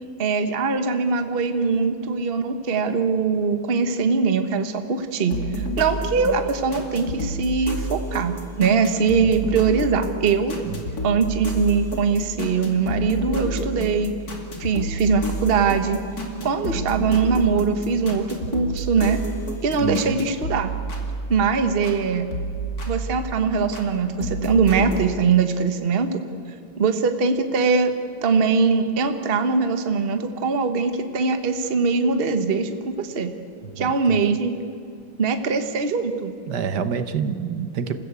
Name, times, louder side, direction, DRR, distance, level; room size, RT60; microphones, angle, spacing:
voice 1, 0.2-10.6 11.0-14.1 14.6-16.0 16.4-19.2 19.6-20.7 21.3-22.3 22.9-26.2 26.8-27.9 28.2-33.3 33.8-34.5 35.2-36.3, right 5 dB, 35° right, 7 dB, 1.2 m, -22 dB
sound 1, 5.3-22.0 22.3-23.9 24.2-25.0, right 1 dB, 50° left, 3.0 m, -30 dB
voice 2, 19.8-20.2 33.8-34.2 36.5-38.0, right 7 dB, 60° right, 10 dB, 1.5 m, -27 dB
27.5 x 15.5 x 8.3 m, 2.4 s
omnidirectional pair, 2.2 m